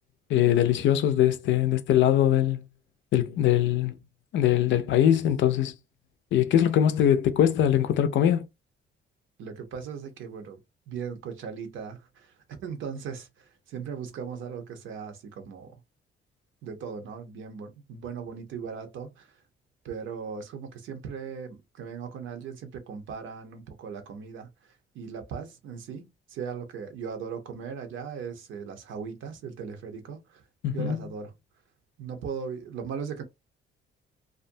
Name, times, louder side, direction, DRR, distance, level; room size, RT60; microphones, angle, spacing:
voice 1, 0.3-2.6 3.1-3.9 4.3-5.7 6.3-8.5 30.6-31.0, left 10 dB, 70° left, 0.5 m, -22 dB
voice 2, 9.4-10.6 10.9-15.7 16.6-19.4 19.8-24.5 24.9-30.4 30.7-31.3 32.0-33.2, right 6 dB, 80° right, 0.8 m, -38 dB
2.5 x 2.1 x 2.6 m
cardioid pair, 90°, 20 cm